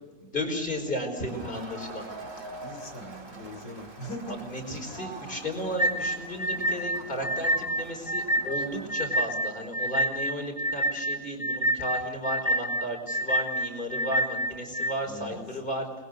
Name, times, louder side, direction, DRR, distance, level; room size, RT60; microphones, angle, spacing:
voice 1, 0.2-2.0 4.3-15.9, equal, 30° left, 4 dB, 5.2 m, -34 dB
Crowd, 1.2-9.1, right 2 dB, 50° right, 3.1 m, -44 dB
voice 2, 2.6-4.4 15.0-15.5, left 1 dB, 90° left, 7 dB, 4.0 m, -40 dB
sound 1, 5.8-14.9, equal, ahead, 1.9 m, -28 dB
29.5 x 21.5 x 6.6 m, 1.3 s
omnidirectional pair, 1.7 m